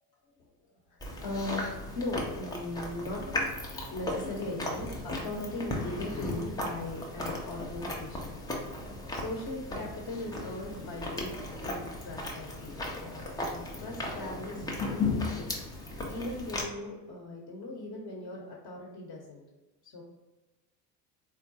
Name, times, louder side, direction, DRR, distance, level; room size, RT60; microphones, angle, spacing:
voice 1, 0.9-3.4 3.9-8.4 9.1-15.5 16.0-19.4 19.8-20.0, left 2 dB, 40° left, -2 dB, 0.8 m, -39 dB
Chewing mastication, 1.0-16.6, left 2 dB, 10° left, 0.3 m, -36 dB
3.6 x 2.2 x 2.6 m, 1.1 s
figure-of-eight pair, 60°, 48 cm